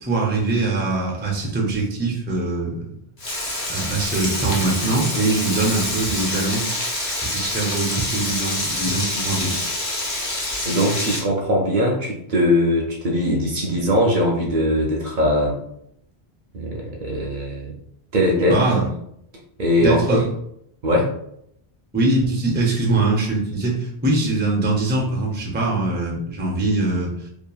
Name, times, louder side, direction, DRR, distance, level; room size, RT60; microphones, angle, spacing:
voice 1, 0.0-2.9 3.7-6.6 7.2-9.6 18.5-18.8 19.8-20.3 21.9-27.1, right 2 dB, 15° right, -2 dB, 0.4 m, -22 dB
Frying (food), 3.2-11.2, left 1 dB, 35° left, 0.7 m, -26 dB
voice 2, 10.6-15.6 16.5-17.7 18.1-18.6 19.6-20.2 20.8-21.1, left 1 dB, 60° right, 0 dB, 0.6 m, -20 dB
2.8 x 2.4 x 2.3 m, 0.74 s
omnidirectional pair, 1.0 m